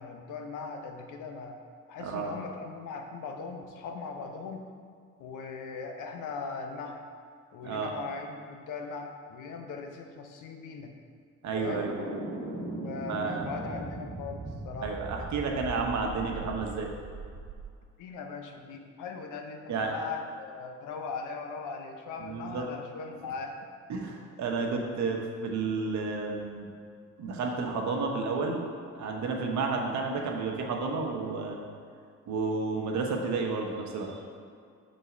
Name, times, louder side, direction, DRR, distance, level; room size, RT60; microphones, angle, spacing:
voice 1, 0.0-1.6 1.9-4.7 5.2-7.1 7.5-10.9 11.6-11.9 12.8-15.0 18.0-23.6, left 4 dB, 85° left, 4 dB, 0.8 m, -39 dB
voice 2, 2.0-2.3 7.6-7.9 11.4-11.9 13.1-13.5 14.8-16.9 19.7-20.0 22.2-22.7 23.9-26.7 27.2-28.6 28.9-31.6 32.3-34.2, right 4 dB, 65° right, 1 dB, 1.1 m, -31 dB
sound 1, 11.6-17.7, right 2 dB, 45° right, 1.5 m, -39 dB
5.2 x 4.1 x 5.9 m, 2.2 s
cardioid pair, 90°, 30 cm